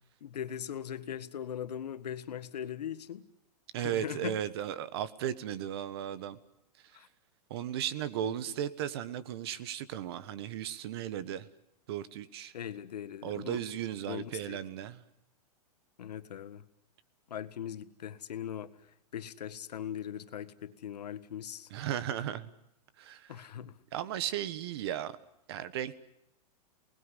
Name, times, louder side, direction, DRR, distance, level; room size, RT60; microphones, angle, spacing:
voice 1, 0.2-3.2 3.8-4.4 6.9-7.1 8.2-8.3 12.5-13.6 14.1-14.6 16.0-16.6 17.3-18.7 19.1-21.7 23.3-23.7, left 9 dB, 85° left, 1.7 m, -40 dB
voice 2, 3.7-6.4 7.5-11.5 11.9-12.5 13.2-15.0 21.7-22.5 23.0-23.5 23.9-25.1 25.5-26.0, right 10 dB, 40° right, 1.3 m, -36 dB
28.0 x 20.0 x 10.0 m
supercardioid pair, 175°, 20 cm